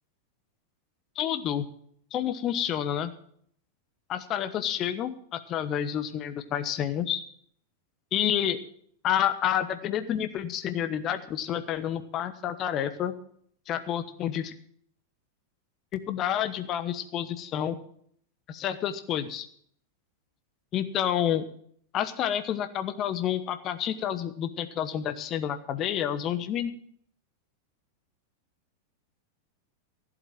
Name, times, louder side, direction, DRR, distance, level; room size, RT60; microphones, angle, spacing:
voice 1, 1.2-1.7 2.1-3.1 4.1-7.2 8.1-8.6 9.0-13.1 13.7-14.5 15.9-17.8 18.5-19.5 20.7-21.4 21.9-26.7, left 10 dB, 35° left, 11 dB, 1.1 m, -29 dB
15.0 x 8.0 x 7.4 m, 0.63 s
figure-of-eight pair, 90°, 0 cm